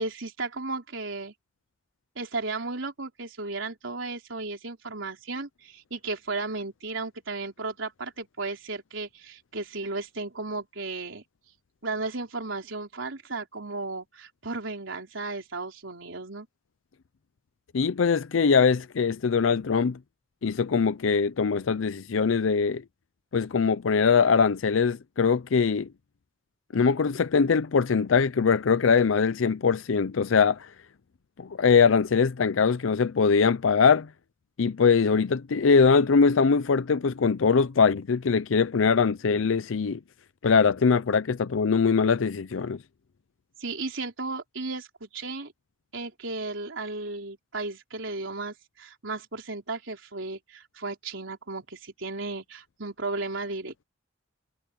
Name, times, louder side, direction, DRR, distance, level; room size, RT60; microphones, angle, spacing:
voice 1, 0.0-1.3 2.2-11.2 11.8-16.5 43.6-45.5 45.9-53.9, right 3 dB, 85° right, 3.7 m, -34 dB
voice 2, 17.7-20.0 20.4-22.8 23.3-25.9 26.7-30.7 31.4-34.1 34.6-40.0 40.4-42.8, left 5 dB, 85° left, 0.5 m, -22 dB
head